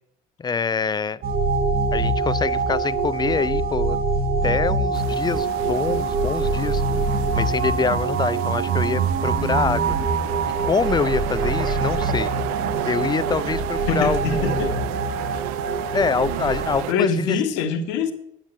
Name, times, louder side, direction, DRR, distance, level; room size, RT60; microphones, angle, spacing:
voice 1, 0.4-1.2 1.9-4.0 4.4-6.8 7.3-10.0 10.6-12.3 12.9-14.9 15.9-17.4, left 5 dB, 25° left, 18 dB, 0.5 m, -25 dB
sound 1, 1.2-16.8, right 3 dB, 50° right, 1.4 m, -24 dB
sound 2, 4.9-16.9, right 16 dB, 80° right, 0.4 m, -32 dB
voice 2, 13.9-14.7 16.9-18.1, left 5 dB, 75° left, 7 dB, 1.3 m, -24 dB
9.2 x 7.3 x 7.4 m, 0.79 s
hypercardioid pair, 70°, 19 cm